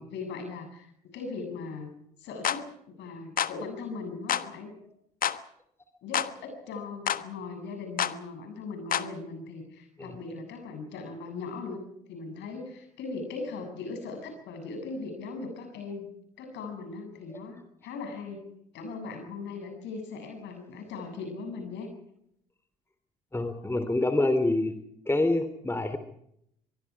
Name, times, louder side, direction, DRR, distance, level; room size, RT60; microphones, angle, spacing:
voice 1, 0.0-1.9 2.2-4.7 6.0-16.1 16.4-18.5 18.7-21.9, left 4 dB, 60° left, 6 dB, 7.7 m, -39 dB
sound 1, 2.4-2.6 3.4-3.6 4.3-4.5 5.2-5.4 6.1-6.3 7.1-7.2 8.0-8.2 8.9-9.1, left 9 dB, 45° left, 1.3 m, -27 dB
voice 2, 23.3-24.7 25.1-26.0, left 2 dB, 10° left, 9 dB, 3.2 m, -26 dB
24.0 x 23.5 x 4.9 m, 0.74 s
figure-of-eight pair, 50°, 21 cm